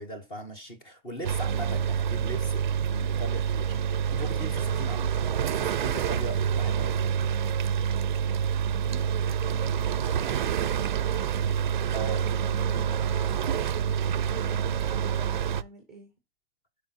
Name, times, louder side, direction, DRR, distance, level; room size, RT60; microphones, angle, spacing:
voice 1, 0.0-2.7 2.9-3.8 4.1-5.1 5.5-7.0 11.9-12.3, right 1 dB, 15° left, 1.3 m, -39 dB
sound 1, 1.2-15.6, right 8 dB, 55° right, 0.6 m, -27 dB
voice 2, 8.8-11.9 12.2-13.7 14.2-16.1, right 3 dB, ahead, 1.0 m, -46 dB
9.9 x 5.0 x 4.3 m
hypercardioid pair, 170°, 29 cm